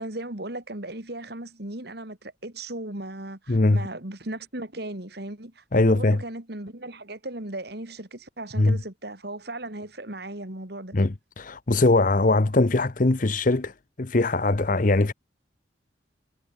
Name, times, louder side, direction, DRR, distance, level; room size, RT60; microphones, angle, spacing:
voice 1, 0.0-10.9, right 1 dB, 55° right, 2.9 m, -37 dB
voice 2, 3.5-3.8 5.7-6.2 8.6-8.8 10.9-13.7 14.0-15.1, left 2 dB, 45° left, 0.8 m, -21 dB
head